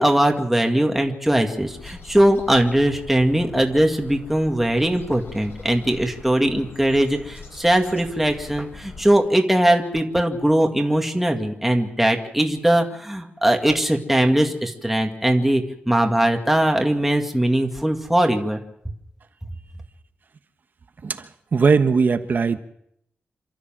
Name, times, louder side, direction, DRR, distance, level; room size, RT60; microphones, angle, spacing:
voice 1, 0.0-18.6, right 1 dB, 5° right, 3 dB, 2.1 m, -20 dB
sound 1, 1.6-9.1, left 5 dB, 80° left, 4.4 m, -42 dB
voice 2, 21.0-22.6, right 5 dB, 50° right, 9 dB, 1.3 m, -19 dB
27.5 x 13.0 x 7.5 m, 0.75 s
wide cardioid pair, 140°, 4 cm